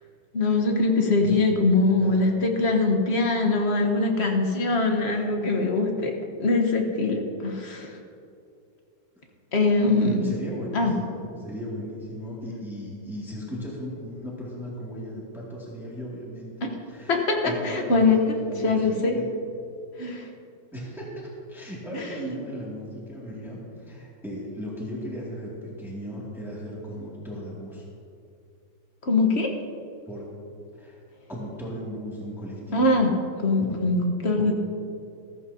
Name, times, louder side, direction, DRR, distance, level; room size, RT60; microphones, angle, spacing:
voice 1, 0.3-6.1 6.4-8.0 9.5-10.2 10.7-10.9 17.1-18.3 18.6-19.1 20.0-20.3 21.9-22.4 29.0-29.5 32.7-33.1 33.4-34.5, left 3 dB, 40° left, 2 dB, 1.2 m, -22 dB
voice 2, 10.0-18.8 19.1-19.3 20.7-27.8 30.1-30.3 30.8-31.0 31.3-32.9 33.6-33.8 34.4-34.5, equal, ahead, -6 dB, 2.2 m, -36 dB
14.5 x 14.5 x 2.8 m, 2.5 s
omnidirectional pair, 2.1 m